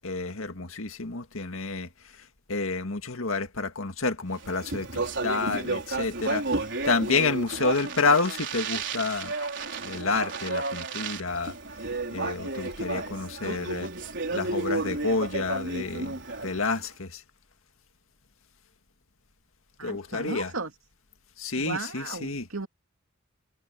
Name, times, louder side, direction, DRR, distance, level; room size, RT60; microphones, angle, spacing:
voice 1, 0.0-1.9 2.5-9.3 9.8-11.5 12.1-13.9 14.3-16.2 16.4-17.2 19.8-20.5 21.4-22.4, left 3 dB, 75° left, 2.0 m, -29 dB
Speech, 4.4-16.8, right 3 dB, 55° right, 4.6 m, -32 dB
voice 2, 13.8-14.1 19.8-20.7 21.6-22.7, right 3 dB, 80° right, 2.5 m, -36 dB
head